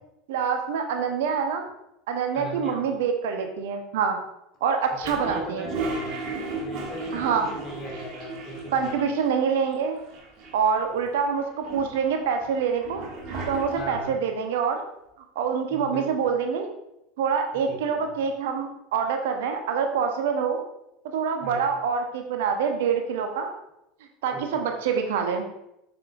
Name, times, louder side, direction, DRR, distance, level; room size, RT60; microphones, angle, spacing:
voice 1, 0.3-1.6 2.1-4.2 4.6-5.7 7.1-7.5 8.7-10.0 10.5-13.0 13.5-14.8 15.3-16.7 17.2-20.6 21.0-23.5 24.2-25.5, right 6 dB, 60° right, 4 dB, 1.0 m, -26 dB
voice 2, 2.3-2.8 5.0-6.2 6.6-9.1 10.9-11.0 13.7-14.2 15.7-16.3 17.7-18.1 21.4-21.7 24.3-24.6, equal, 35° left, -1 dB, 2.7 m, -39 dB
Toilet flush, 5.0-9.4 9.7-9.8 10.0-10.8 11.3-14.1, right 3 dB, 45° right, 2.1 m, -35 dB
9.3 x 7.1 x 2.6 m, 0.84 s
figure-of-eight pair, 75°, 0 cm